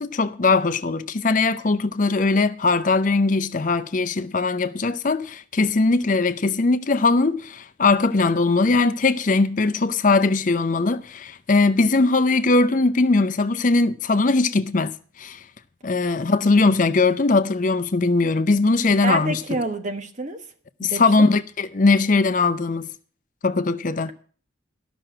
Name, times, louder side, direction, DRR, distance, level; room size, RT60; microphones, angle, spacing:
voice 1, 0.0-15.4 15.8-19.6 20.8-22.9 23.4-24.1, left 3 dB, 40° left, 0.6 m, -20 dB
voice 2, 19.0-20.4 20.8-21.3, right 2 dB, 40° right, 1.3 m, -28 dB
13.0 x 6.1 x 8.7 m
head